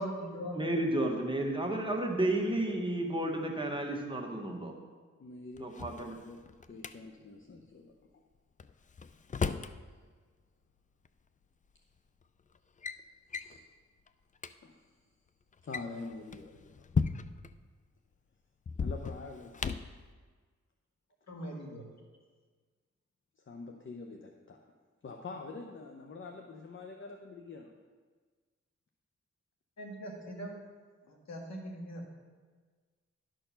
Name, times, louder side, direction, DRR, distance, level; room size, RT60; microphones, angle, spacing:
voice 1, 0.0-0.6 21.3-21.9 29.8-30.6 31.1-32.1, equal, 65° left, 1 dB, 1.6 m, -40 dB
voice 2, 0.5-4.7 5.6-6.2, right 1 dB, 15° right, 1 dB, 1.4 m, -32 dB
voice 3, 5.2-6.4 6.7-7.9 13.3-13.6 14.6-14.9 15.6-16.7 18.8-19.8 23.5-24.6 25.0-27.7, left 3 dB, 45° left, 2 dB, 0.7 m, -46 dB
Drawer open or close, 5.6-6.9 8.6-9.8 11.1-11.2 12.0-12.2 12.5-13.0 13.3-13.6 14.1-14.2 14.4-14.5 15.5-17.5 18.7-20.0, left 5 dB, 25° left, 0.3 m, -35 dB
11.5 x 4.5 x 5.6 m, 1.5 s
cardioid pair, 70°, 29 cm